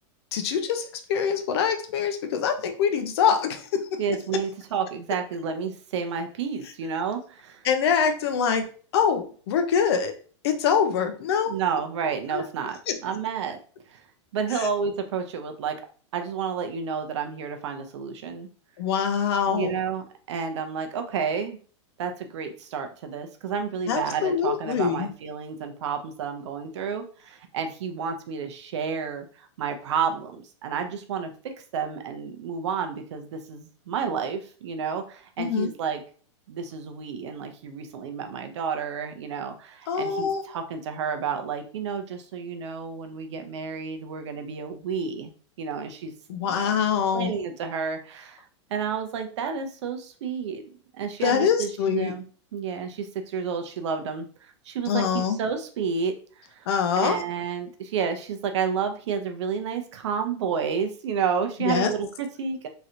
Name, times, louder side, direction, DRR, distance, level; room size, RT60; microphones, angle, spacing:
voice 1, 0.3-3.9 7.6-8.7 8.9-10.1 10.4-11.5 12.3-12.4 12.9-13.0 18.8-19.7 23.9-25.1 35.4-35.7 39.9-40.4 46.3-47.3 51.2-52.1 54.9-55.4 56.7-57.2 61.6-61.9, left 7 dB, 55° left, 7 dB, 0.6 m, -24 dB
voice 2, 4.0-7.7 11.4-13.6 13.9-14.0 14.3-15.8 16.1-18.5 19.5-21.6 22.0-36.0 36.5-45.3 45.6-46.1 46.6-46.8 47.1-48.4 48.7-50.6 50.9-52.2 52.5-54.3 54.6-56.1 56.5-56.7 56.9-62.7, right 6 dB, 65° right, 6 dB, 0.6 m, -30 dB
3.1 x 2.8 x 2.5 m, 0.41 s
supercardioid pair, 160°, 16 cm